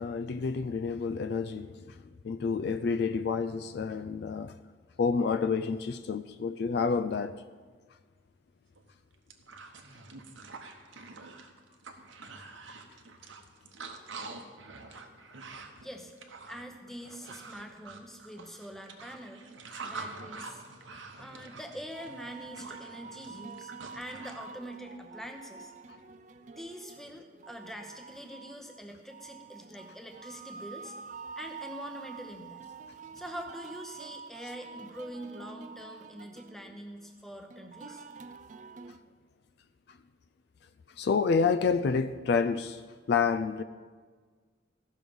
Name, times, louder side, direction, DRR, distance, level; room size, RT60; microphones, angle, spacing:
voice 1, 0.0-1.9 2.2-4.5 5.0-7.4 41.0-42.8 43.1-43.6, left 5 dB, 60° left, 0.3 m, -29 dB
sound 1, 8.8-8.9 9.1-24.4, right 4 dB, 80° right, 1.0 m, -46 dB
voice 2, 16.5-19.4 19.9-20.6 21.2-25.7 26.5-30.9 31.4-32.6 33.1-38.0, equal, ahead, 0.8 m, -44 dB
sound 2, 21.9-39.0, right 5 dB, 40° right, 0.4 m, -47 dB
15.0 x 6.3 x 5.3 m
head